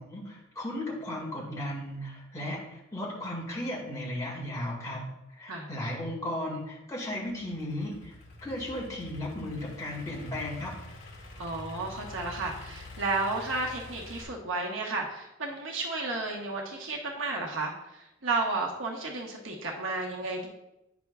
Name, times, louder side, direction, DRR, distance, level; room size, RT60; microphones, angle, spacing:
voice 1, 0.0-5.0 5.4-8.1 8.4-10.7, left 1 dB, 15° left, -4 dB, 2.0 m, -35 dB
Idling / Accelerating revving vroom, 7.1-14.2, left 1 dB, 60° left, 1.5 m, -46 dB
voice 2, 11.4-20.5, right 3 dB, 70° right, -1 dB, 1.2 m, -32 dB
9.5 x 6.0 x 2.4 m, 0.90 s
head